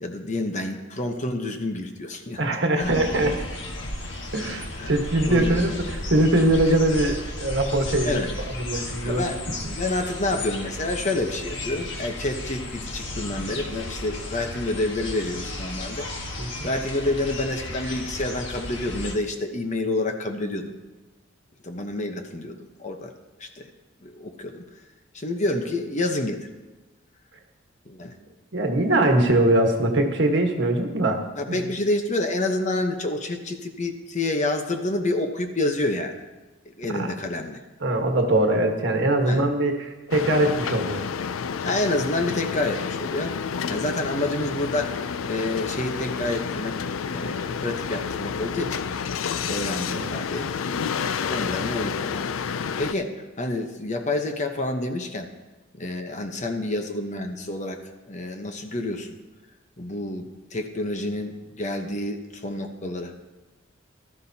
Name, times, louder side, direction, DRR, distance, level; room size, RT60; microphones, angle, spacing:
voice 1, 0.0-2.4 2.7-2.9 3.8-3.9 4.4-5.0 5.2-5.6 8.0-8.3 9.0-16.1 16.6-20.7 21.6-23.1 23.4-23.7 24.0-24.6 25.1-26.4 27.8-28.1 31.4-36.3 36.7-37.6 39.3-39.5 41.6-43.4 43.7-44.9 45.2-46.7 47.1-48.8 49.5-50.5 51.3-55.3 55.8-57.8 58.1-59.2 59.8-63.1, left 2 dB, 35° left, 5 dB, 0.9 m, -28 dB
voice 2, 2.4-3.3 4.3-9.2 16.4-16.7 28.5-31.2 31.5-31.6 36.9-37.1 37.8-41.1 49.9-50.1, right 1 dB, 60° right, 3 dB, 1.4 m, -22 dB
sound 1, 2.8-19.1, left 1 dB, 65° left, 1.5 m, -34 dB
sound 2, 40.1-52.9, left 6 dB, 85° left, 0.4 m, -30 dB
16.0 x 13.0 x 2.8 m, 1.1 s
head